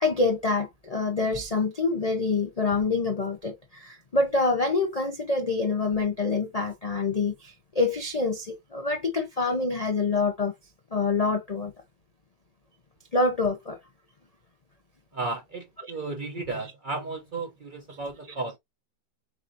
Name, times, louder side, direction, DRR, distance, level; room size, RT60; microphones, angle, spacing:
voice 1, 0.0-10.5 10.9-11.7 13.1-13.8 15.8-15.9, left 3 dB, 80° left, 0.3 m, -26 dB
voice 2, 15.1-18.6, right 3 dB, 55° right, 0.5 m, -34 dB
6.5 x 2.6 x 2.6 m
omnidirectional pair, 1.9 m